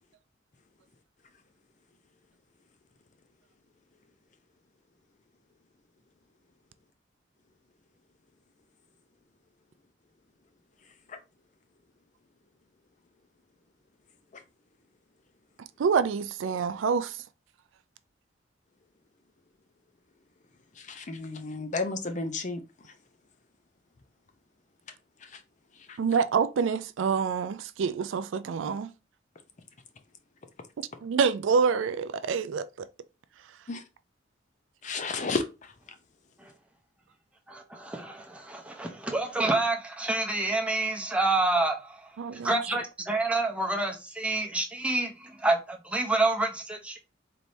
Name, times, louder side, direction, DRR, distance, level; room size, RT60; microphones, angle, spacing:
voice 1, 15.8-17.2 26.0-28.9 31.0-32.9 42.2-42.6, right 5 dB, 70° right, 0.3 m, -27 dB
voice 2, 20.8-22.6 25.3-25.4 25.9-26.0 33.7-33.8 34.8-35.7, left 3 dB, 35° left, 0.5 m, -32 dB
voice 3, 37.5-47.0, right 2 dB, 5° right, 0.6 m, -28 dB
4.1 x 3.3 x 2.6 m
head